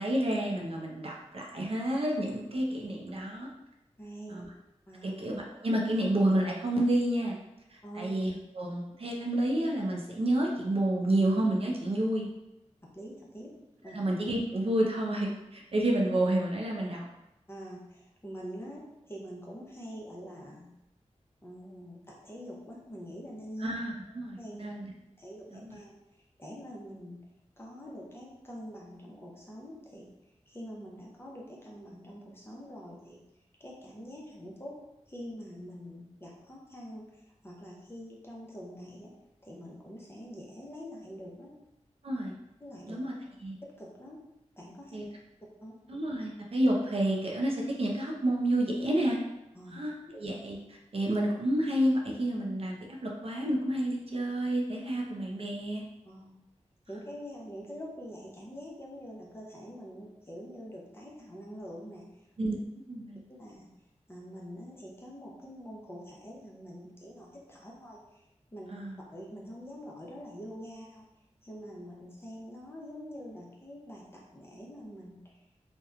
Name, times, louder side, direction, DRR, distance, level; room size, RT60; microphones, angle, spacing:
voice 1, 0.0-3.5 4.3-4.5 5.0-7.3 7.7-12.3 13.9-17.0 23.6-24.9 25.5-25.7 42.0-42.3 42.9-43.1 43.4-43.6 44.9-45.1 45.9-49.2 49.7-55.8 62.4-62.6 62.9-63.2 68.7-69.0, right 1 dB, 55° right, -1 dB, 0.4 m, -30 dB
voice 2, 4.0-4.4 4.9-5.1 7.8-8.1 12.8-13.5 13.8-14.0 17.5-18.8 19.1-20.7 21.4-23.7 24.4-24.7 25.2-26.0 26.4-27.2 27.6-30.1 30.5-33.2 33.6-34.7 35.1-37.0 37.4-39.1 39.4-41.5 42.6-43.0 43.8-44.2 44.6-45.0 45.6-45.8 49.6-49.8 56.0-56.3 56.9-62.1 63.4-63.7 64.1-68.2 68.5-68.7 69.1-71.1 71.4-75.3, equal, 20° left, -4 dB, 0.6 m, -45 dB
2.8 x 2.1 x 2.4 m, 0.92 s
wide cardioid pair, 80°, 12 cm